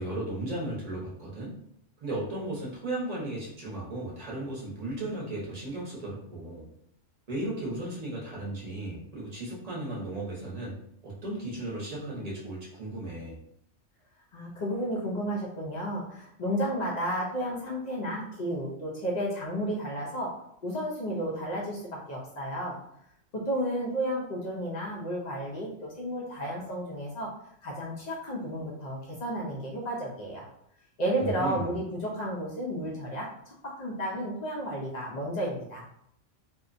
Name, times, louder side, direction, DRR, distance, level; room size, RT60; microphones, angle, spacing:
voice 1, 0.0-1.5 2.0-6.7 7.3-10.7 11.0-13.4 31.2-31.7, right 1 dB, 40° right, -5 dB, 0.7 m, -35 dB
voice 2, 14.3-20.3 20.6-22.8 23.5-27.3 27.6-30.4 31.0-35.8, equal, 75° left, -3 dB, 0.4 m, -32 dB
2.5 x 2.1 x 2.4 m, 0.73 s
omnidirectional pair, 1.3 m